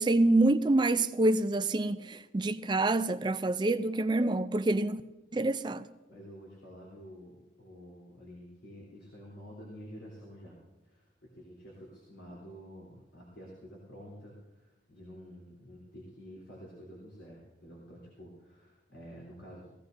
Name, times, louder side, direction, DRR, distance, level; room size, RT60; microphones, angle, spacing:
voice 1, 0.0-5.0 5.3-5.9, right 2 dB, 25° right, 0.4 m, -27 dB
voice 2, 6.1-10.6 10.8-19.7, equal, 80° left, 3.3 m, -49 dB
18.5 x 15.5 x 2.6 m
head